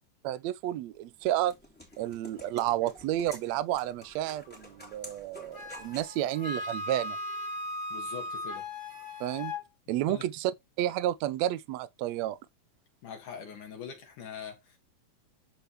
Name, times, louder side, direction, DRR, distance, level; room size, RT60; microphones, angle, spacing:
voice 1, 0.2-1.5 2.0-7.2 9.2-9.5 9.9-10.5 10.8-12.4, right 13 dB, 75° right, 1.8 m, -31 dB
sound 1, 1.0-6.2, left 1 dB, 5° left, 3.0 m, -50 dB
Wind instrument woodwind instrument, 5.5-9.6, left 2 dB, 20° right, 4.2 m, -37 dB
voice 2, 7.9-8.7 10.1-10.3 13.0-14.8, left 7 dB, 80° left, 4.1 m, -43 dB
12.5 x 4.9 x 3.6 m
omnidirectional pair, 3.5 m